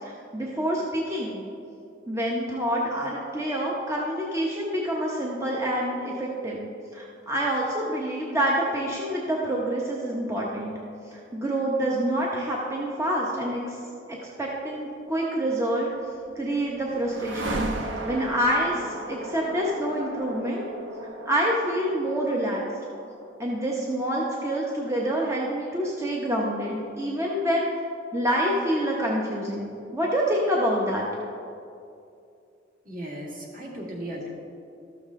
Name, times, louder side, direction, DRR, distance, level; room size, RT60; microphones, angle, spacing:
voice 1, 0.0-1.4 2.1-10.7 11.1-13.8 14.1-15.9 16.4-17.6 18.0-20.6 21.2-22.7 23.4-27.7 28.1-31.0, right 1 dB, 15° right, -3 dB, 0.8 m, -27 dB
sound 1, 15.9-26.0, right 1 dB, 70° right, 0.9 m, -37 dB
voice 2, 32.9-34.3, right 1 dB, 50° right, -3 dB, 1.9 m, -36 dB
12.5 x 7.1 x 3.6 m, 2.5 s
head